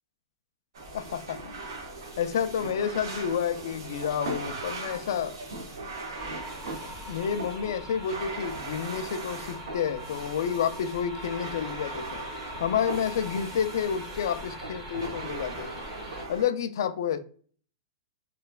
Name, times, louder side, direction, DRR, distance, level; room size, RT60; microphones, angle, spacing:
sound 1, 0.7-16.4, right 2 dB, 70° right, 0.9 m, -39 dB
voice 1, 0.9-1.5 2.2-5.3 7.1-12.2 12.6-15.7 16.3-17.2, left 8 dB, 65° left, 0.3 m, -29 dB
sound 2, 6.1-16.2, equal, 10° right, 0.7 m, -42 dB
3.1 x 2.1 x 2.3 m
supercardioid pair, 170°, 2 cm